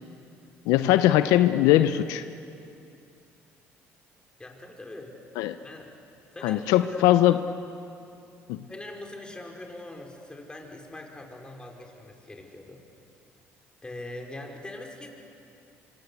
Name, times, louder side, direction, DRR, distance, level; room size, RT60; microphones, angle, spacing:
voice 1, 0.7-2.2 5.4-5.6 6.4-7.4 8.5-8.6, left 13 dB, 85° left, 11 dB, 0.7 m, -20 dB
voice 2, 4.4-5.1 5.6-5.9 6.3-7.1 8.7-12.8 13.8-15.1, left 2 dB, 15° left, 1 dB, 5.0 m, -42 dB
26.0 x 25.0 x 8.3 m, 2.6 s
supercardioid pair, 75°, 6 cm